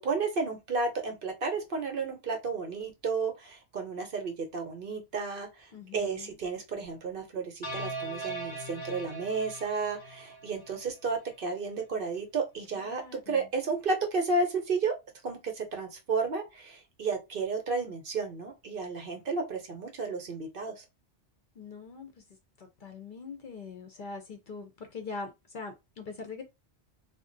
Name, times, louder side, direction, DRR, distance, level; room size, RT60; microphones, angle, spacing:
voice 1, 0.0-15.0 15.2-20.8, right 4 dB, 55° right, 0.8 m, -32 dB
voice 2, 5.7-6.4 12.7-13.4 21.6-22.1 22.6-26.4, left 4 dB, 55° left, 0.6 m, -42 dB
sound 1, 7.6-10.9, right 2 dB, 25° left, 1.1 m, -40 dB
2.4 x 2.1 x 3.8 m
omnidirectional pair, 1.2 m